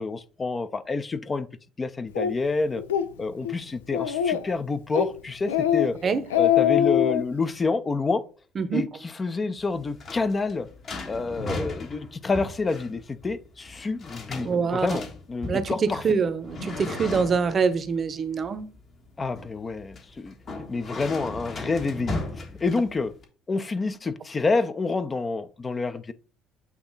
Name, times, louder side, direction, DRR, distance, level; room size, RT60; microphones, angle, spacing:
voice 1, 0.0-1.5 1.8-2.8 3.2-6.0 6.4-8.2 8.7-10.7 11.1-16.0 19.2-20.3 20.7-23.1 23.5-26.1, left 3 dB, 30° left, 0.6 m, -28 dB
Speech, 2.2-2.3 2.8-3.1 3.4-3.5 3.9-4.5 4.9-5.1 5.5-5.9 6.2-7.2, left 10 dB, 90° left, 0.4 m, -22 dB
voice 2, 8.6-8.9 14.4-14.9 15.5-18.7, right 5 dB, 40° right, 0.8 m, -25 dB
sound 1, 9.6-23.2, left 2 dB, 50° left, 1.5 m, -37 dB
8.2 x 2.8 x 4.0 m
hypercardioid pair, 60°, 0 cm